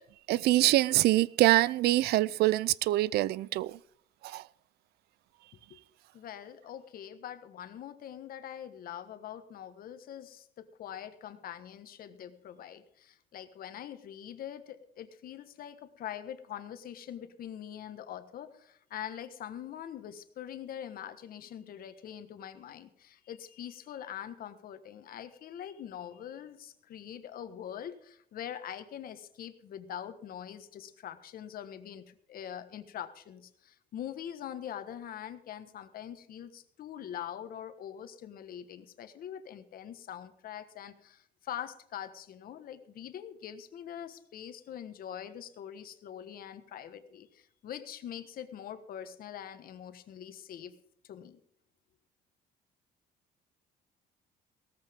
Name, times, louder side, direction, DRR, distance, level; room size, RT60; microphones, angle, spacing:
voice 1, 0.3-3.8 4.2-4.4, right 16 dB, 70° right, 0.4 m, -25 dB
voice 2, 6.1-50.8 51.0-51.4, left 10 dB, 60° left, 1.4 m, -43 dB
17.0 x 14.0 x 3.6 m
cardioid pair, 110°, 17 cm